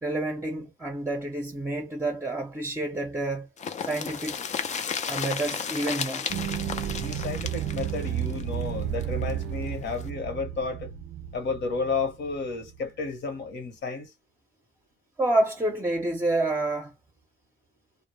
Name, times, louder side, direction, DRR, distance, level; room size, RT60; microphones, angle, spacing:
voice 1, 0.0-3.5 3.8-4.4 5.1-6.3 15.2-16.9, right 2 dB, 10° right, 0.6 m, -28 dB
sound 1, 3.6-9.3 9.6-9.7 10.0-10.1, left 6 dB, 35° left, 0.4 m, -33 dB
sound 2, 6.3-12.8 13.2-13.3, right 10 dB, 55° right, 0.4 m, -33 dB
voice 2, 7.0-10.9 11.3-14.1, left 4 dB, 65° left, 1.0 m, -32 dB
2.1 x 2.1 x 3.1 m
cardioid pair, 90°, 20 cm